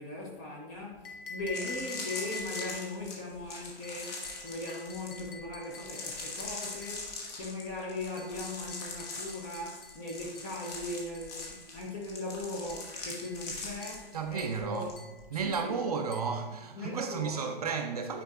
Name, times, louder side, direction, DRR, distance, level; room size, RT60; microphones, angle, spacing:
voice 1, 0.0-14.9 15.4-15.8 16.8-17.5, left 2 dB, 15° left, 0.5 m, -39 dB
sound 1, 0.9-1.0 1.4-14.9 15.2-15.5, left 3 dB, 40° left, 1.6 m, -42 dB
sound 2, 1.0-3.0 3.8-7.1 8.2-11.6 12.7-12.9 13.2-13.5 13.8-14.1 14.4-14.6 15.0-15.2 15.5-15.8 16.1-16.4, left 3 dB, 60° left, 1.1 m, -46 dB
voice 2, 14.1-14.9 15.3-18.2, right 5 dB, 40° right, 0.4 m, -33 dB
9.2 x 4.6 x 2.4 m
hypercardioid pair, 135°, 31 cm